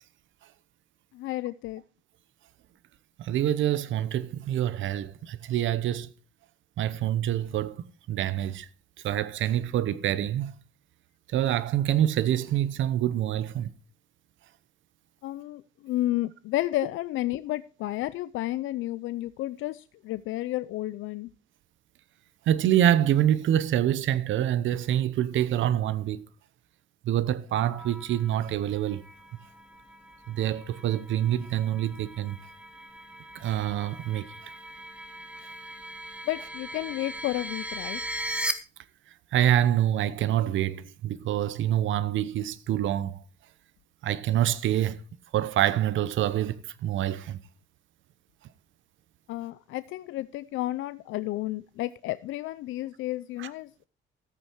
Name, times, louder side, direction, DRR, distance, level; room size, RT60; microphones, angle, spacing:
voice 1, 1.1-1.8 15.2-21.3 36.3-38.0 49.3-53.9, left 16 dB, 85° left, 0.5 m, -32 dB
voice 2, 3.2-6.1 6.8-7.7 8.1-8.7 9.0-10.5 11.3-13.7 22.5-26.2 27.0-29.0 30.3-32.4 33.3-34.3 39.3-43.2 44.0-45.0 45.3-47.4 53.4-53.5, right 11 dB, 75° right, 0.9 m, -26 dB
sound 1, 27.6-38.5, right 1 dB, 5° right, 1.4 m, -39 dB
13.5 x 8.4 x 4.5 m
cardioid pair, 90°, 20 cm